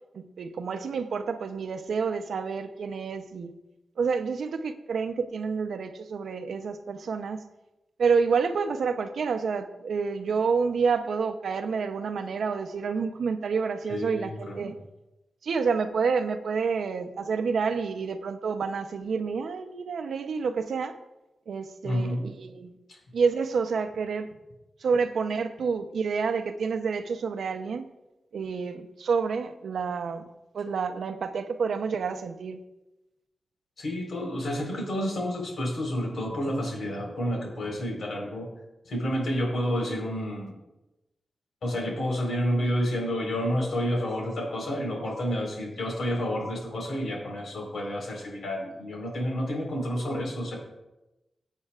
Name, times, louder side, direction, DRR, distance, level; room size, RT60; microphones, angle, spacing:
voice 1, 0.1-3.5 4.0-7.4 8.0-14.8 15.4-21.0 21.5-22.7 23.1-24.3 24.8-27.9 28.3-30.3 30.5-32.6 39.7-40.0, right 5 dB, 80° right, 8 dB, 0.7 m, -28 dB
voice 2, 13.9-14.6 21.8-22.2 33.8-38.5 38.9-40.6 41.6-50.5, equal, 70° left, 0 dB, 4.3 m, -30 dB
21.5 x 8.4 x 2.5 m, 0.98 s
wide cardioid pair, 130°, 0 cm